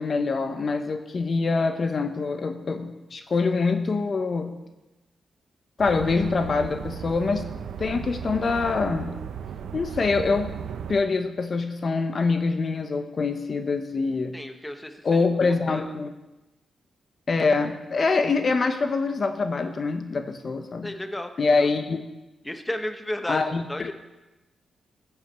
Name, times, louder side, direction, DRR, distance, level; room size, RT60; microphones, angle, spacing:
voice 1, 0.0-4.5 5.8-7.5 7.8-9.2 9.7-10.6 10.9-14.4 15.0-16.1 17.3-20.9 21.4-22.0 23.3-23.9, left 4 dB, 45° left, 8 dB, 1.0 m, -25 dB
sound 1, 5.8-11.0, right 8 dB, 85° right, 0.7 m, -35 dB
voice 2, 14.3-15.2 15.7-15.9 20.8-21.3 21.6-21.7 22.4-23.9, left 1 dB, 10° left, 7 dB, 1.0 m, -33 dB
14.5 x 7.1 x 7.4 m, 1.0 s
cardioid pair, 95°, 0 cm